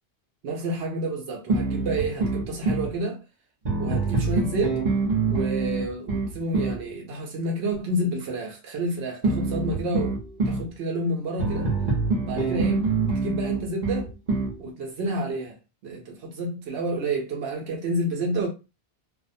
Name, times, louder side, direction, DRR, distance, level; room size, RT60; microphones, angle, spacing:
voice 1, 0.4-3.2 3.8-4.8 5.3-10.2 10.5-11.7 12.3-12.9 13.1-14.1 14.6-15.6 15.8-18.5, right 1 dB, 80° right, 0.9 m, -29 dB
sound 1, 1.5-2.9 3.6-6.8 9.2-10.7 11.4-14.6, right 3 dB, 45° right, 0.8 m, -25 dB
2.4 x 2.1 x 2.6 m
omnidirectional pair, 1.1 m